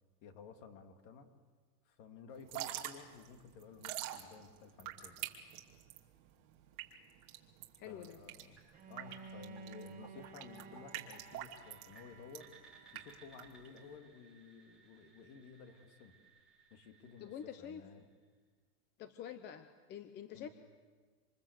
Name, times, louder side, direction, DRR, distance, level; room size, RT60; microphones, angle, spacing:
voice 1, 0.2-1.3 1.8-5.2 7.8-8.6 8.9-12.5 12.9-16.2 16.7-18.1 20.3-20.5, left 5 dB, 40° left, 6 dB, 2.8 m, -54 dB
Drip / Trickle dribble, 2.3-13.9, right 13 dB, 40° right, 2.7 m, -46 dB
voice 2, 7.8-8.2 17.2-17.8 19.0-20.5, left 9 dB, 25° left, 10 dB, 0.8 m, -47 dB
sound 1, 8.6-18.4, right 4 dB, ahead, 5.3 m, -63 dB
Bowed string instrument, 8.7-13.7, right 4 dB, 20° right, 1.5 m, -54 dB
27.0 x 27.0 x 8.1 m, 1.5 s
supercardioid pair, 160°, 44 cm